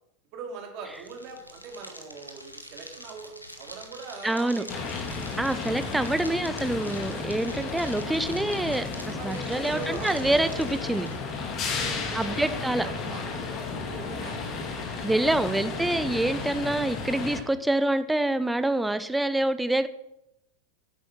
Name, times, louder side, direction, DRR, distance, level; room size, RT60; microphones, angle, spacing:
voice 1, 0.3-5.0 9.2-10.3 11.7-14.5, right 4 dB, 40° right, 2 dB, 2.7 m, -42 dB
sound 1, 0.8-11.2, equal, 90° left, 1.3 m, -46 dB
voice 2, 4.2-4.6 5.4-11.1 12.1-12.9 15.0-19.9, right 1 dB, 5° right, 12 dB, 0.7 m, -26 dB
sound 2, 4.7-17.4, left 4 dB, 30° left, 1.8 m, -33 dB
9.6 x 8.2 x 6.2 m, 0.87 s
figure-of-eight pair, 90°, 0 cm